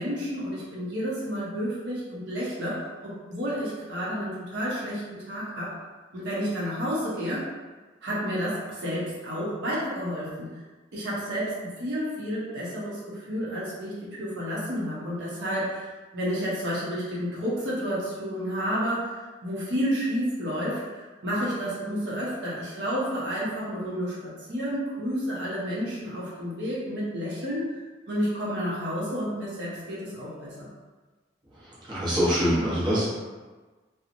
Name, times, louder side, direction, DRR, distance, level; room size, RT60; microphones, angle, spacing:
voice 1, 0.0-5.7 6.1-7.5 8.0-10.5 10.9-27.8 28.1-30.7, equal, 70° right, -7 dB, 0.7 m, -30 dB
voice 2, 31.9-33.0, equal, 25° right, -9 dB, 0.7 m, -24 dB
2.8 x 2.0 x 2.5 m, 1.3 s
head